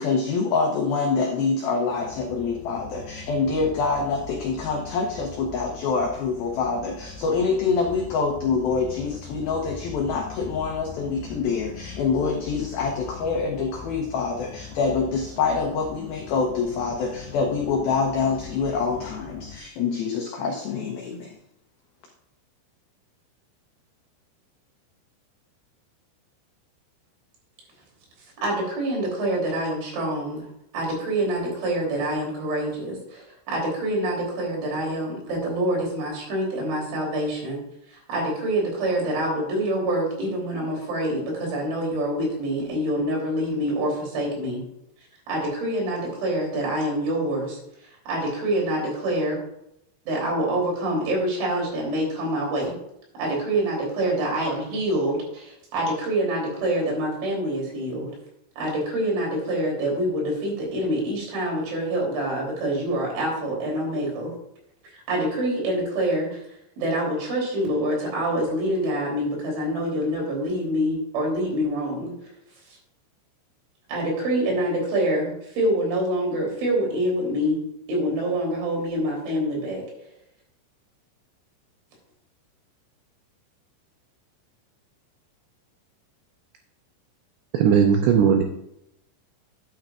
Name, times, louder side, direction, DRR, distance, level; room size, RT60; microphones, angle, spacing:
voice 1, 0.0-21.4, left 4 dB, 85° left, 1 dB, 2.1 m, -26 dB
sound 1, 2.0-19.6, left 6 dB, 70° left, 3.1 m, -41 dB
voice 2, 28.4-30.5 30.7-37.6 37.9-44.6 45.3-47.6 48.1-49.4 50.1-52.7 53.2-58.1 58.6-64.3 64.9-66.4 66.8-72.1 73.9-77.6 77.9-79.8, right 1 dB, 70° right, -2 dB, 5.8 m, -26 dB
voice 3, 87.5-88.4, right 7 dB, 85° right, 4 dB, 2.5 m, -18 dB
11.5 x 9.0 x 2.5 m, 0.79 s
omnidirectional pair, 5.7 m